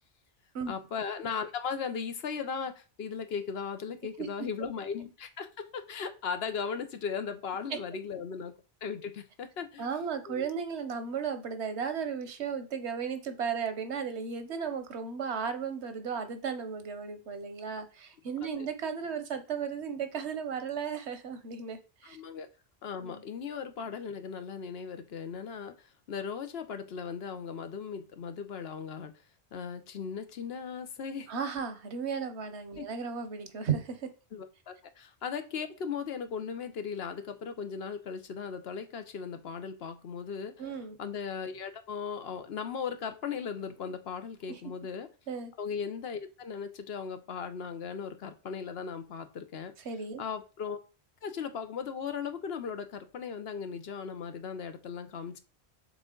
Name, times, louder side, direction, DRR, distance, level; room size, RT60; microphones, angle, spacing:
voice 1, 0.7-8.5 8.8-9.9 10.3-10.5 18.4-18.5 22.0-22.5 22.8-25.7 26.1-29.1 29.5-31.3 32.8-32.9 34.3-40.5 41.0-45.1 45.6-49.7 50.2-50.8 51.2-55.4, left 6 dB, 70° left, 9 dB, 1.0 m, -37 dB
voice 2, 9.8-22.2 23.0-23.2 31.3-34.1 40.6-41.0 44.5-44.6 45.3-45.5 49.8-50.2, right 6 dB, 80° right, 9 dB, 1.2 m, -35 dB
6.9 x 3.9 x 3.8 m, 0.33 s
omnidirectional pair, 1.1 m